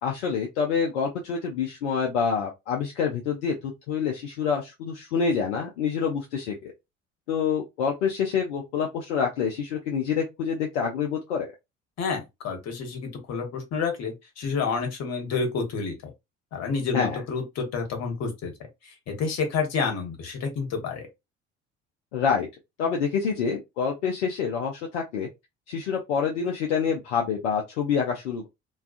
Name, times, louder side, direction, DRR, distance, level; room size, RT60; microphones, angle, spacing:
voice 1, 0.0-6.7 7.3-11.5 16.9-17.2 22.1-22.5 22.8-25.3 25.7-28.5, left 6 dB, 70° left, 0.6 m, -27 dB
voice 2, 12.0-15.9 16.5-18.5 19.1-21.1, left 5 dB, 45° left, 1.1 m, -29 dB
2.4 x 2.3 x 2.4 m
figure-of-eight pair, 55°, 37 cm